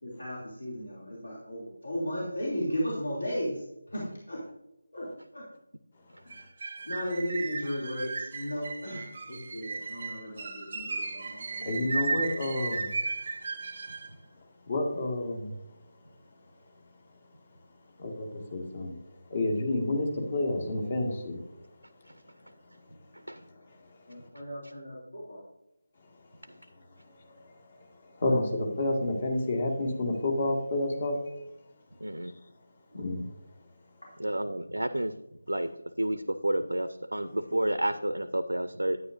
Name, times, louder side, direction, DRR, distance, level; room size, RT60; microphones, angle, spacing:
voice 1, 0.0-4.4 4.9-5.4 6.2-6.5 6.8-11.9 24.1-25.4 34.0-34.1, equal, 60° left, -5 dB, 2.9 m, -35 dB
Irish Jig, 6.3-14.1, right 4 dB, 35° right, 0.7 m, -35 dB
voice 2, 11.6-12.9 14.7-15.6 18.0-19.0 19.3-21.4 23.7-23.8 27.3-27.4 27.8-27.9 28.2-31.2 32.9-33.3, left 2 dB, 35° left, 1 dB, 2.0 m, -29 dB
voice 3, 32.0-32.3 34.2-35.1 35.5-35.7 36.0-39.0, right 1 dB, 75° right, 11 dB, 0.6 m, -30 dB
9.7 x 9.6 x 2.7 m, 0.89 s
figure-of-eight pair, 160°, 0 cm